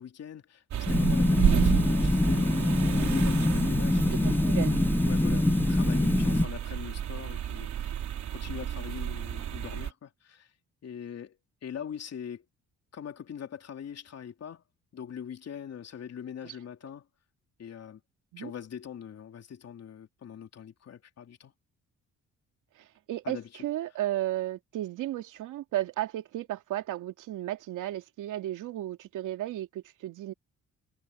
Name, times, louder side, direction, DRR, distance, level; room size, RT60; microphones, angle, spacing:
voice 1, 0.0-2.6 2.9-4.4 5.1-8.0 8.3-10.5 10.8-12.4 12.9-14.6 14.9-17.1 17.6-18.0 18.4-21.5 23.2-23.5, left 8 dB, 55° left, 3.2 m, -42 dB
sound 1, 0.7-9.9, right 10 dB, 70° right, 3.5 m, -31 dB
sound 2, 0.9-6.5, left 2 dB, 5° left, 0.6 m, -24 dB
voice 2, 4.1-4.8 16.4-16.5 18.3-18.5 22.8-30.3, right 14 dB, 90° right, 2.8 m, -34 dB
cardioid pair, 90°, 30 cm